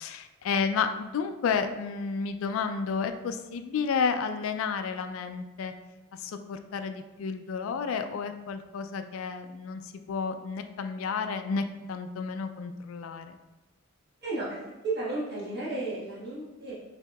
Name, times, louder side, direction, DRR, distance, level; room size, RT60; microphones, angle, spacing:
voice 1, 0.0-5.7 6.1-13.4, left 5 dB, 75° left, 8 dB, 0.3 m, -31 dB
voice 2, 14.2-16.7, right 2 dB, 50° right, -8 dB, 1.4 m, -33 dB
5.9 x 2.8 x 2.3 m, 1.1 s
head